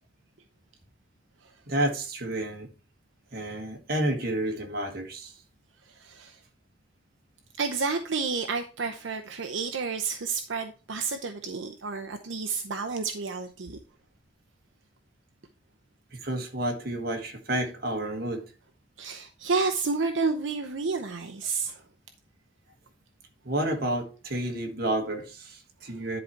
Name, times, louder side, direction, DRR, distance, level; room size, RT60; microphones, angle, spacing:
voice 1, 1.7-2.7 3.3-5.3 16.1-18.4 23.4-26.2, right 1 dB, 50° right, 1.6 m, -30 dB
voice 2, 6.0-6.4 7.6-13.8 19.0-21.8, right 4 dB, 75° right, 0.7 m, -30 dB
10.5 x 4.2 x 4.5 m
head